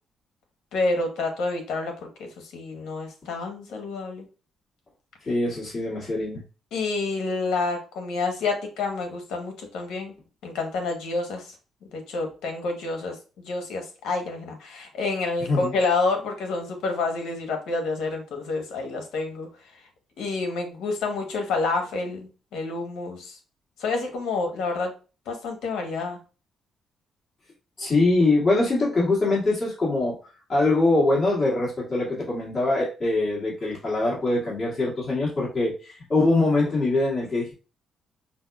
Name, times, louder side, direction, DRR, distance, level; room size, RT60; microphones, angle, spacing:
voice 1, 0.7-4.2 6.7-10.1 10.4-11.5 11.9-19.5 20.2-23.4 23.8-24.9 25.3-26.2, left 3 dB, 85° left, 4 dB, 0.9 m, -28 dB
voice 2, 5.2-6.4 15.5-15.7 27.8-30.2 30.5-37.5, left 2 dB, 30° left, -5 dB, 1.7 m, -23 dB
5.2 x 2.2 x 2.2 m, 0.34 s
cardioid pair, 90°, 0 cm